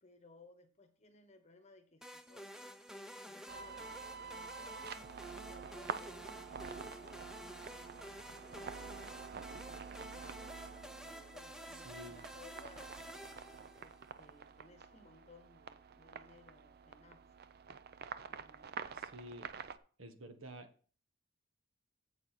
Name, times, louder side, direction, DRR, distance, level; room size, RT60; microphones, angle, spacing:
voice 1, 0.0-2.7 3.2-7.2 8.4-10.6 10.8-13.0 13.7-17.2 18.2-18.7, left 3 dB, 35° left, 8 dB, 1.0 m, -61 dB
sound 1, 2.0-14.2, equal, 5° right, 0.5 m, -51 dB
sound 2, 3.5-19.8, right 6 dB, 50° right, 0.5 m, -48 dB
voice 2, 11.8-12.2 18.9-19.5 20.0-20.7, equal, 75° right, 8 dB, 1.3 m, -50 dB
7.8 x 7.1 x 4.1 m, 0.42 s
head